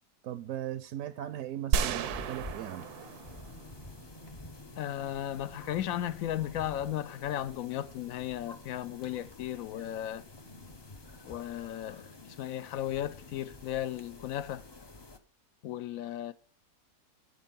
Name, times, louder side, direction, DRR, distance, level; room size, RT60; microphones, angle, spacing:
voice 1, 0.2-2.8, right 12 dB, 70° right, 0.8 m, -38 dB
sound 1, 1.7-4.1, right 8 dB, 85° right, 1.2 m, -33 dB
sound 2, 1.8-15.2, left 2 dB, 35° left, 0.4 m, -49 dB
voice 2, 4.8-10.2 11.2-14.6 15.6-16.3, left 12 dB, 70° left, 0.9 m, -35 dB
8.4 x 6.6 x 5.2 m
omnidirectional pair, 1.6 m